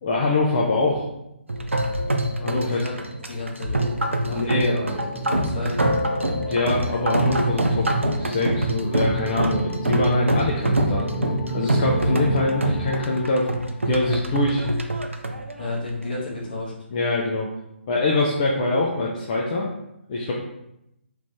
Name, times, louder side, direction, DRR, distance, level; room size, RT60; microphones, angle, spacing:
voice 1, 0.0-1.1 2.4-2.8 4.3-5.1 6.3-7.9 8.2-11.2 11.5-13.6 13.9-14.7 16.9-17.5 17.9-19.7 20.1-20.3, left 2 dB, 30° left, -3 dB, 0.4 m, -24 dB
sound 1, 1.5-16.4, right 1 dB, 80° right, 0.4 m, -25 dB
voice 2, 2.5-2.9 3.3-4.8 5.2-5.8 15.6-16.7, left 2 dB, 45° left, -4 dB, 1.2 m, -32 dB
sound 2, 3.5-14.0, right 4 dB, 5° left, 1.0 m, -34 dB
3.2 x 2.5 x 3.3 m, 0.84 s
figure-of-eight pair, 140°, 7 cm